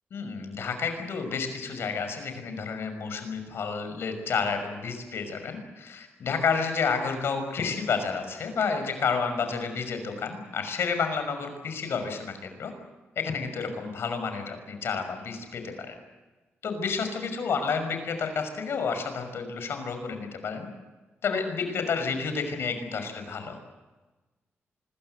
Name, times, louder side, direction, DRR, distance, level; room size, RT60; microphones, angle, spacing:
voice 1, 0.1-12.7 13.2-15.9 16.6-20.7 21.2-23.6, left 5 dB, 65° left, 8 dB, 5.9 m, -30 dB
25.5 x 22.5 x 8.1 m, 1.2 s
wide cardioid pair, 150°, 4 cm